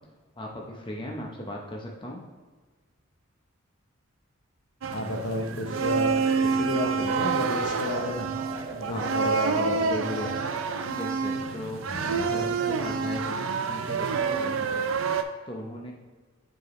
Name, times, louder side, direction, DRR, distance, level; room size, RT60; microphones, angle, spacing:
voice 1, 0.4-2.2 8.9-9.1 10.9-14.9 15.5-15.9, left 1 dB, 25° left, 0 dB, 0.7 m, -38 dB
sound 1, 4.8-15.2, right 5 dB, 65° right, 0.4 m, -28 dB
voice 2, 4.9-8.3 8.7-10.4 11.9-12.5, left 2 dB, 60° left, 3 dB, 0.9 m, -32 dB
sound 2, 5.7-10.8, equal, 20° right, 1.7 m, -42 dB
7.6 x 4.9 x 3.1 m, 1.4 s
head